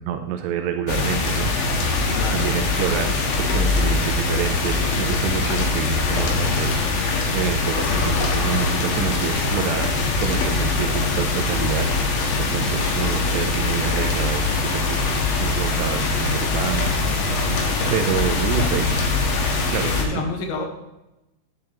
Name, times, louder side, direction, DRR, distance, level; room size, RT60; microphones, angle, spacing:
voice 1, 0.0-1.9 2.3-6.7 7.3-9.9 10.2-11.9 12.4-17.0 17.9-18.9 19.7-20.2, right 9 dB, 80° right, 5 dB, 2.6 m, -28 dB
sound 1, 0.9-20.0, left 3 dB, 65° left, 2.4 m, -22 dB
voice 2, 2.1-2.5 2.7-3.2 18.5-18.7 19.7-20.7, left 4 dB, 80° left, 3 dB, 3.4 m, -30 dB
10.5 x 9.9 x 3.0 m, 0.95 s
omnidirectional pair, 5.2 m